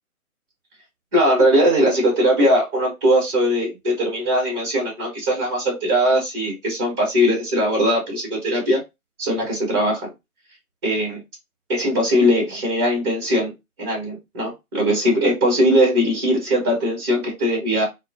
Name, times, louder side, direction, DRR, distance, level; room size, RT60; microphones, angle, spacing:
voice 1, 1.1-8.8 9.2-10.1 10.8-11.2 11.7-13.5 13.8-17.8, equal, 20° right, -2 dB, 0.9 m, -20 dB
2.2 x 2.2 x 2.7 m, 0.22 s
figure-of-eight pair, 140°, 44 cm